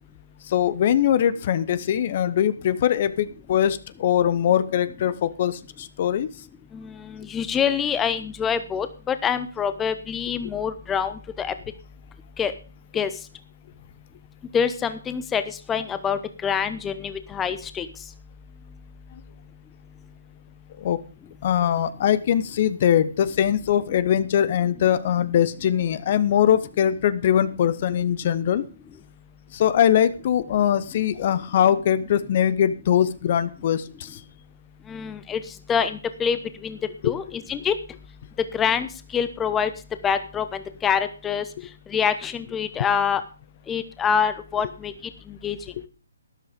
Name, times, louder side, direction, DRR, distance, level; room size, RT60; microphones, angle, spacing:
voice 1, 0.5-6.3 20.8-21.0 21.4-28.7 29.5-34.2 37.0-37.2 41.6-41.7, left 10 dB, 45° left, 16 dB, 0.9 m, -22 dB
voice 2, 6.7-11.5 12.4-12.5 12.9-13.1 14.5-17.9 34.9-35.4 35.7-36.8 37.0-37.7 38.5-39.7 40.0-41.4 41.9-43.2 43.7-44.9 45.3-45.6, left 7 dB, 15° left, 11 dB, 0.9 m, -25 dB
12.5 x 10.5 x 5.1 m, 0.36 s
hypercardioid pair, 145°, 0 cm